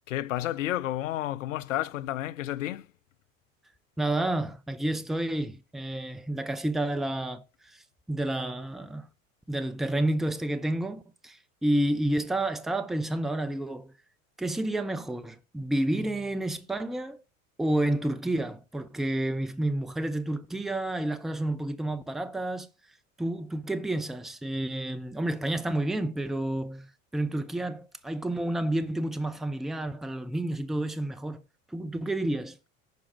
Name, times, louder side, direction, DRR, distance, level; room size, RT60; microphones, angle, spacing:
voice 1, 0.1-2.9, left 14 dB, 70° left, 0.5 m, -31 dB
voice 2, 4.0-7.8 8.1-9.1 9.5-13.9 14.4-17.2 17.6-22.7 23.2-31.4 31.7-32.6, right 1 dB, ahead, 0.5 m, -30 dB
10.5 x 4.9 x 4.7 m
figure-of-eight pair, 70°, 40 cm